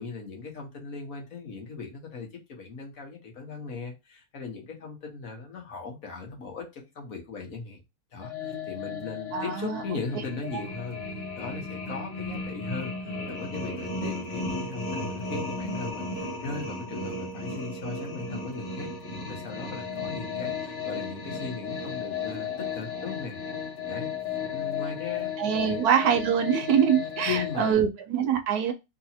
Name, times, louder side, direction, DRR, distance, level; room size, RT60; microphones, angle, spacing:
voice 1, 0.0-7.8 8.1-23.4 23.9-24.1 24.5-25.3 25.6-25.8 27.3-27.8, left 4 dB, 60° left, 1 dB, 1.5 m, -38 dB
sound 1, 8.2-27.7, left 4 dB, 40° left, 1.4 m, -35 dB
voice 2, 9.3-9.8 25.4-28.7, right 8 dB, 75° right, 7 dB, 1.2 m, -24 dB
3.4 x 3.0 x 4.2 m, 0.24 s
omnidirectional pair, 1.7 m